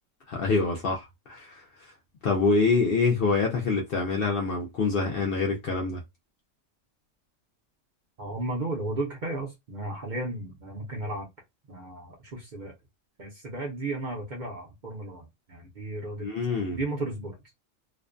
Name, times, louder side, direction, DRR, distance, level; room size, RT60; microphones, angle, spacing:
voice 1, 0.3-1.6 2.2-6.0 16.2-16.8, left 4 dB, 60° left, 0.6 m, -25 dB
voice 2, 8.2-11.3 11.7-12.8 13.2-16.3 16.7-17.4, right 2 dB, 50° right, 0.6 m, -34 dB
2.5 x 2.2 x 2.4 m
omnidirectional pair, 1.3 m